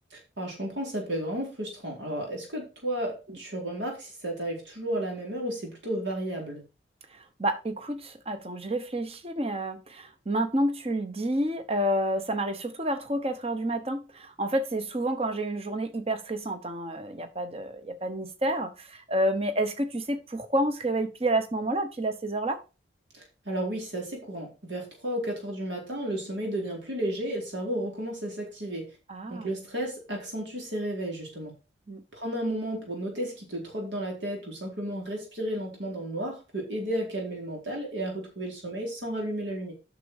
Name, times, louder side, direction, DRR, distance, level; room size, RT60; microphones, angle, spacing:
voice 1, 0.1-6.6 23.1-28.8 29.3-31.5 32.1-39.7, right 1 dB, 75° right, 4.2 m, -33 dB
voice 2, 7.1-22.6 29.1-29.5 31.9-32.0, right 1 dB, 30° right, 1.0 m, -29 dB
9.1 x 6.4 x 4.9 m
head